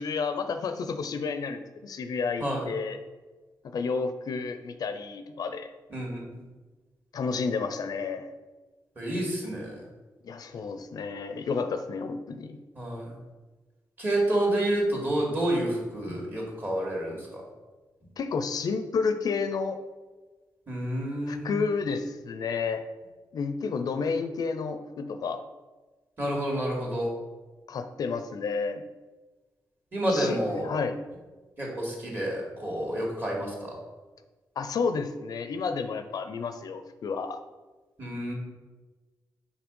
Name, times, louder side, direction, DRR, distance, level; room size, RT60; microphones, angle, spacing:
voice 1, 0.0-3.0 3.7-5.7 7.1-8.3 10.2-12.6 18.2-19.8 21.3-22.8 23.3-25.4 27.7-28.8 30.1-31.0 34.6-37.4, left 5 dB, 65° left, 8 dB, 0.5 m, -31 dB
voice 2, 5.9-6.4 9.0-9.7 12.8-13.1 14.0-17.4 20.7-21.6 26.2-27.1 29.9-30.7 31.6-33.8 38.0-38.3, right 1 dB, 30° right, -2 dB, 2.1 m, -29 dB
6.0 x 4.0 x 5.3 m, 1.3 s
wide cardioid pair, 120°, 7 cm